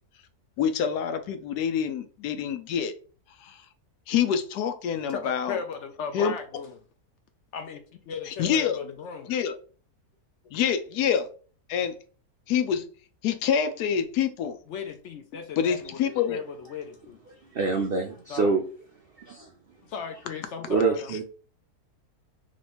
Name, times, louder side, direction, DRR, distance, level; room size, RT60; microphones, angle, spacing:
voice 1, 0.6-2.9 3.4-3.6 4.1-5.6 6.1-6.3 8.4-8.8 9.3-9.5 10.5-11.3 11.7-11.9 12.5-12.8 13.2-14.6 15.6-16.4, left 8 dB, 85° left, 1.2 m, -26 dB
voice 2, 5.1-6.8 7.5-9.3 14.7-17.2 18.3-18.6 19.8-21.2, left 6 dB, 70° left, 0.7 m, -37 dB
voice 3, 17.5-18.6 19.2-19.5 20.7-21.2, right 4 dB, 80° right, 0.5 m, -25 dB
3.1 x 2.9 x 4.2 m
omnidirectional pair, 1.7 m